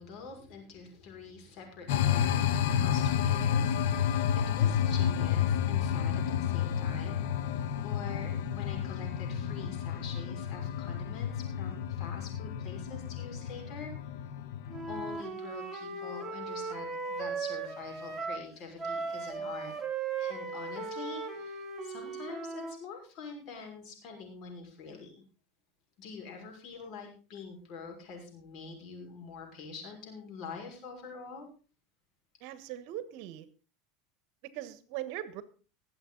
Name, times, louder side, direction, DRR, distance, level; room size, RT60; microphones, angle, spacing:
voice 1, 0.0-7.5 7.8-13.9 14.9-19.7 20.2-25.2 26.0-31.5, left 5 dB, 50° left, 2 dB, 5.9 m, -45 dB
sound 1, 1.9-15.2, left 9 dB, 75° left, 1.3 m, -30 dB
Wind instrument woodwind instrument, 14.7-18.5 18.8-22.8, right 4 dB, 15° right, 2.9 m, -37 dB
voice 2, 32.4-33.5 34.4-35.4, right 13 dB, 65° right, 14 dB, 1.3 m, -40 dB
21.5 x 7.9 x 4.0 m, 0.36 s
supercardioid pair, 120°, 0 cm